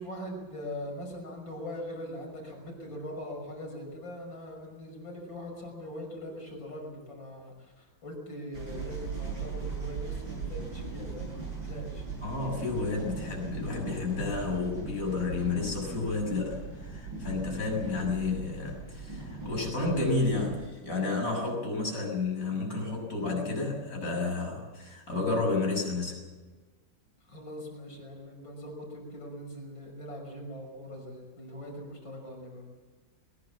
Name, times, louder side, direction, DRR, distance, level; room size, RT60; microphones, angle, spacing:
voice 1, 0.0-12.0 27.2-32.6, equal, 75° left, 1 dB, 6.7 m, -41 dB
sound 1, 8.5-20.6, right 4 dB, 80° right, 8.4 m, -39 dB
voice 2, 12.2-26.2, left 3 dB, 45° left, 0 dB, 7.6 m, -31 dB
21.5 x 21.5 x 7.4 m, 1.3 s
omnidirectional pair, 2.1 m